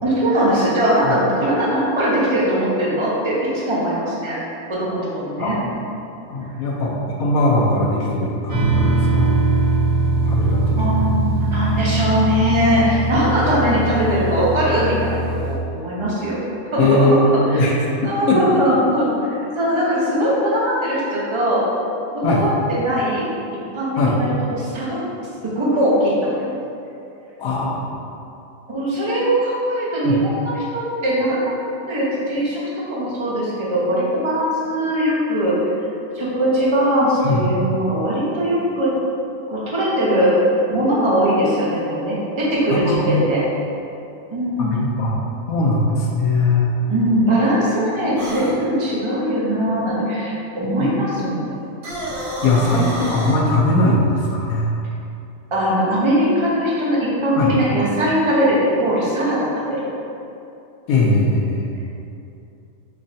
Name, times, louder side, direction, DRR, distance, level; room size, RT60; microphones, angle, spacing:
voice 1, 0.0-4.4 4.7-5.6 10.5-16.4 16.7-17.1 17.5-21.6 22.1-23.3 23.7-25.0 25.4-26.6 28.7-31.4 31.9-32.6 32.9-35.6 36.1-38.9 39.5-43.4 44.3-44.8 46.9-51.6 52.5-53.0 55.5-59.9, equal, 25° right, -6 dB, 0.7 m, -20 dB
voice 2, 5.4-5.7 6.3-9.3 10.2-11.0 16.8-17.7 18.3-18.4 22.2-22.4 24.0-24.1 27.4-27.9 30.0-30.2 37.2-37.4 42.7-43.3 44.6-46.7 50.6-51.0 52.4-54.7 57.4-57.5 60.9-61.7, left 2 dB, 75° left, -3 dB, 1.1 m, -20 dB
sound 1, 8.5-15.6, right 3 dB, 55° right, 0.3 m, -21 dB
sound 2, 48.2-48.5 51.7-53.4, right 1 dB, 80° right, 1.9 m, -29 dB
5.5 x 3.2 x 2.7 m, 2.7 s
omnidirectional pair, 1.6 m